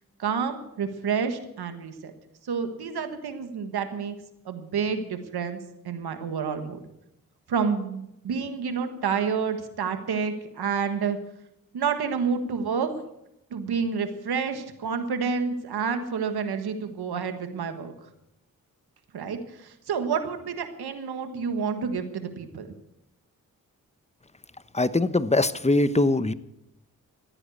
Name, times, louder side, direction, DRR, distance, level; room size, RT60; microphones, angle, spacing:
voice 1, 0.2-2.1 2.4-4.1 4.4-5.6 5.8-6.8 7.5-11.2 11.7-13.0 13.5-17.9 19.1-22.7, right 6 dB, 85° right, 8 dB, 1.6 m, -29 dB
voice 2, 24.7-26.3, left 2 dB, 20° left, 15 dB, 1.0 m, -22 dB
14.5 x 9.9 x 8.5 m, 0.82 s
cardioid pair, 40°, 37 cm